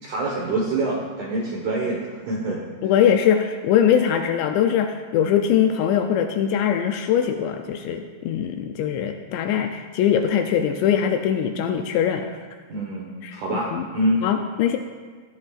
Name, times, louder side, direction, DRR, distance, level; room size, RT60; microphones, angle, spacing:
voice 1, 0.0-2.6 12.7-14.2, right 1 dB, 65° right, -2 dB, 2.0 m, -26 dB
voice 2, 2.8-12.3 13.2-13.9 14.2-14.8, left 9 dB, 80° left, 5 dB, 2.6 m, -22 dB
18.5 x 13.0 x 2.5 m, 1.5 s
omnidirectional pair, 5.4 m